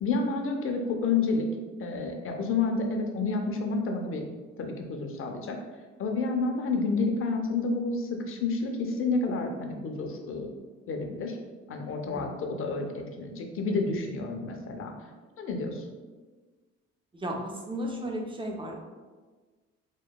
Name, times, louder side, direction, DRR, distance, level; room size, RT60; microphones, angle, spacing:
voice 1, 0.0-1.5 1.8-4.2 4.6-5.6 6.0-10.6 10.9-11.4 11.7-14.9 15.4-16.0, left 3 dB, 45° left, 3 dB, 0.5 m, -30 dB
voice 2, 17.1-18.8, equal, 15° right, 1 dB, 0.4 m, -34 dB
2.9 x 2.1 x 2.2 m, 1.4 s
cardioid pair, 90°, 30 cm